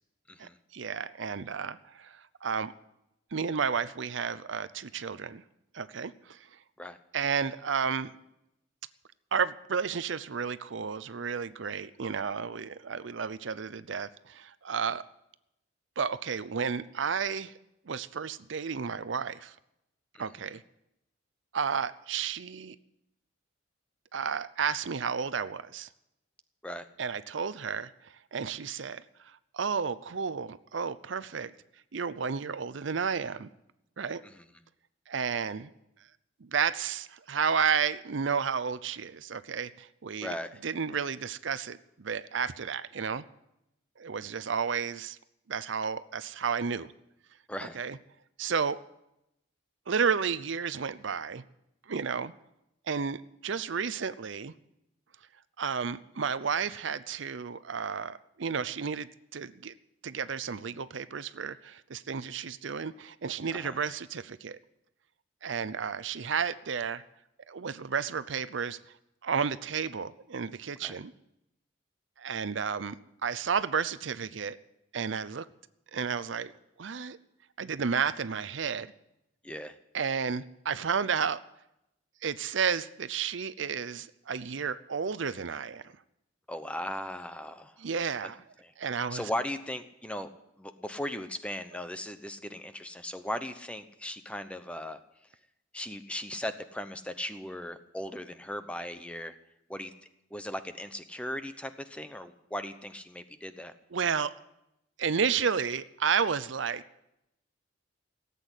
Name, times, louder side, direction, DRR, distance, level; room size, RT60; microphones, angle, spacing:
voice 1, 0.4-2.7 3.3-5.4 5.7-6.5 7.1-8.1 9.3-15.0 16.0-17.5 17.9-19.5 20.2-20.6 21.5-22.8 24.1-25.9 27.0-29.0 29.5-31.5 31.9-33.5 34.0-34.2 35.1-35.7 36.4-40.3 40.6-43.2 44.0-45.2 45.5-46.9 47.8-48.0 48.4-48.8 49.9-51.4 51.9-52.3 52.9-54.5 55.6-59.7 60.0-64.6 65.4-67.0 67.5-68.8 69.2-71.1 72.2-73.0 73.2-74.6 74.9-75.5 75.9-76.5 76.8-77.2 77.6-78.9 79.9-81.4 82.2-85.9 87.8-88.4 88.8-89.2 103.9-104.3 105.0-106.8, right 6 dB, 70° right, 15 dB, 0.6 m, -32 dB
voice 2, 20.1-20.5 26.6-26.8 34.2-34.4 40.2-40.6 47.5-47.8 63.5-63.8 70.8-70.9 79.4-79.8 86.5-87.8 88.2-88.3 88.6-88.7 89.1-90.3 90.6-95.0 95.7-99.4 99.7-99.9 100.3-103.7, left 1 dB, 5° left, 10 dB, 0.8 m, -38 dB
17.0 x 8.3 x 9.9 m, 0.84 s
head